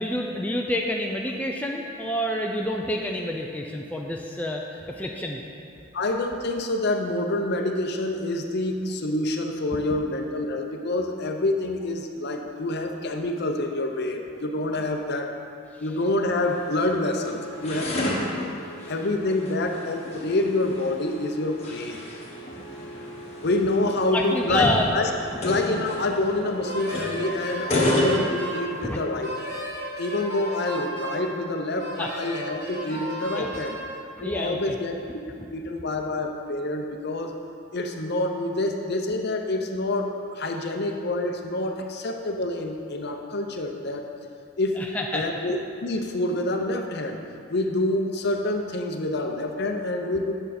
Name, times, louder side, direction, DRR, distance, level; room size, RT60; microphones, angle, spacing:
voice 1, 0.0-5.4 18.8-18.9 22.5-22.6 24.1-24.9 28.8-29.0 32.0-32.1 32.9-33.0 33.3-33.5 34.2-34.8 44.8-45.3, left 1 dB, 5° left, 0 dB, 0.4 m, -28 dB
voice 2, 5.9-15.3 15.8-18.5 18.9-22.0 23.4-25.1 25.4-29.5 30.0-33.7 34.2-34.9 35.3-37.4 37.7-44.1 44.6-44.8 45.1-47.2 47.5-50.3, left 2 dB, 50° left, 3 dB, 0.7 m, -27 dB
sound 1, 16.2-29.0, left 1 dB, 30° left, 1.4 m, -31 dB
Wind instrument woodwind instrument, 26.7-28.7 29.2-31.2 31.8-33.8, equal, 50° right, 1.9 m, -34 dB
8.7 x 6.7 x 4.2 m, 2.6 s
head